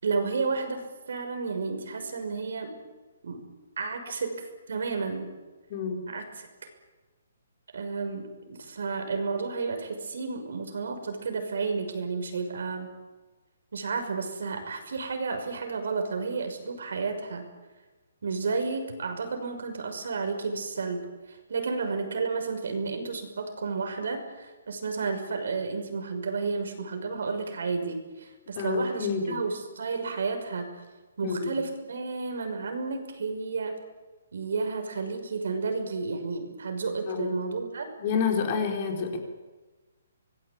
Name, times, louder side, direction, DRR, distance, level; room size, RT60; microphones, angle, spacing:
voice 1, 0.0-2.8 3.2-3.4 3.8-5.3 6.1-6.7 7.7-12.9 13.7-17.5 18.2-30.8 31.2-33.8 34.3-37.9, right 4 dB, 70° right, 6 dB, 6.0 m, -32 dB
voice 2, 28.6-29.4 31.2-31.5 37.1-37.3 38.0-39.2, left 5 dB, 30° left, 3 dB, 4.3 m, -28 dB
26.0 x 19.0 x 8.7 m, 1.2 s
hypercardioid pair, 170°, 0 cm